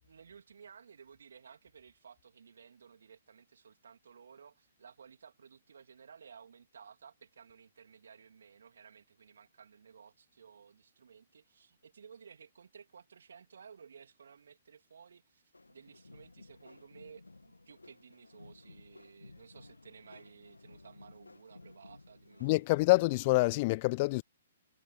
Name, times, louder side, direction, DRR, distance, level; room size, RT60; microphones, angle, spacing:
voice 1, 0.0-15.4 15.7-22.6, right 6 dB, 65° right, 3.1 m, -56 dB
sound 1, 15.5-23.3, left 2 dB, 85° left, 2.1 m, -56 dB
voice 2, 22.4-24.2, left 23 dB, 35° left, 0.6 m, -26 dB
figure-of-eight pair, 120°, 0 cm